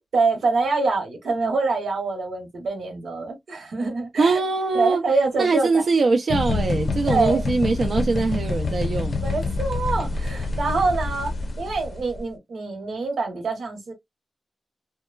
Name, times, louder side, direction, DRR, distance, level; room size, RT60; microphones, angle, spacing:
voice 1, 0.1-4.4 4.7-5.9 7.1-7.5 9.2-11.3 11.6-13.9, right 3 dB, 90° right, 1.0 m, -25 dB
voice 2, 4.2-5.0 5.4-9.1, right 3 dB, 60° right, 0.4 m, -22 dB
sound 1, 6.3-12.2, left 3 dB, 55° left, 0.5 m, -27 dB
2.9 x 2.2 x 2.2 m
wide cardioid pair, 115°, 0 cm